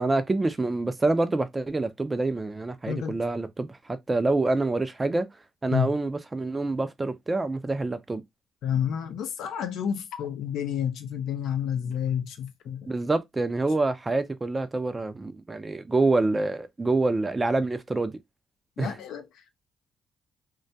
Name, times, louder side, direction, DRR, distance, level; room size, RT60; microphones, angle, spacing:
voice 1, 0.0-5.3 5.6-8.2 12.9-18.2 18.8-18.9, right 2 dB, 20° right, 0.4 m, -26 dB
voice 2, 2.9-3.2 5.7-6.0 8.6-12.9 18.8-19.6, left 8 dB, 80° left, 0.5 m, -30 dB
2.2 x 2.1 x 2.6 m
cardioid pair, 90°, 0 cm